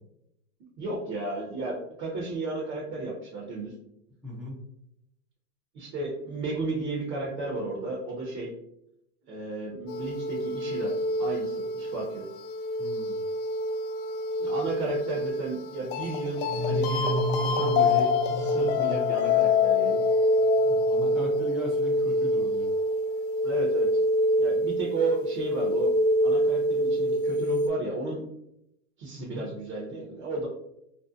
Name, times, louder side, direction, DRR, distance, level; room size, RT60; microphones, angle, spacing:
voice 1, 0.8-3.7 5.7-8.5 9.3-12.2 14.4-20.0 23.4-24.0 24.4-25.9 26.2-28.2 29.0-30.5, right 2 dB, 40° right, -2 dB, 0.8 m, -33 dB
voice 2, 4.2-4.6 12.8-13.2 20.6-22.7 29.2-29.4, equal, ahead, -6 dB, 0.4 m, -38 dB
sound 1, 9.9-27.7, left 1 dB, 55° left, 0.5 m, -26 dB
sound 2, 16.4-20.1, left 2 dB, 75° right, 0.6 m, -33 dB
2.6 x 2.1 x 2.4 m, 0.80 s
hypercardioid pair, 120°, 46 cm